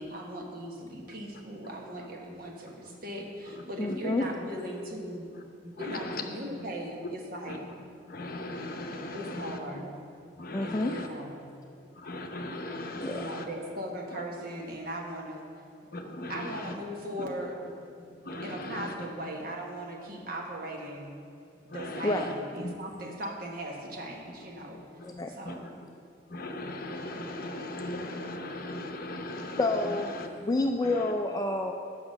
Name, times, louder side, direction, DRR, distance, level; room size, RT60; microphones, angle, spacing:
voice 1, 0.0-5.3 5.8-7.6 9.1-9.9 10.6-11.5 13.0-15.5 16.3-17.5 18.4-21.1 21.6-24.8 25.3-25.7, right 1 dB, 50° right, 0 dB, 1.3 m, -39 dB
voice 2, 2.3-3.0 3.4-4.3 4.9-5.0 5.3-6.7 7.0-7.1 7.4-11.1 11.8-13.5 14.1-14.2 15.9-17.3 18.0-19.1 19.4-19.5 20.1-20.3 21.7-23.2 24.3-24.4 25.0-25.8 26.3-30.3 30.8-31.1, left 1 dB, 50° left, 4 dB, 0.8 m, -40 dB
voice 3, 3.8-4.3 10.5-10.9 13.0-13.2 22.0-22.3 25.0-25.3 29.6-30.1 30.5-31.7, left 2 dB, 20° left, 4 dB, 0.3 m, -28 dB
8.6 x 6.0 x 6.2 m, 2.5 s
head